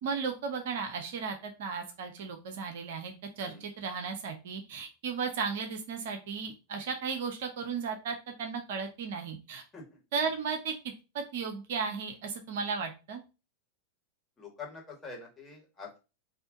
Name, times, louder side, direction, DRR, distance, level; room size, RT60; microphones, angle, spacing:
voice 1, 0.0-9.6 10.1-10.7 11.1-13.2, right 5 dB, 55° right, 5 dB, 0.7 m, -35 dB
voice 2, 14.4-16.0, left 4 dB, 15° left, -1 dB, 1.7 m, -45 dB
3.5 x 2.6 x 3.9 m, 0.30 s
figure-of-eight pair, 90°, 0 cm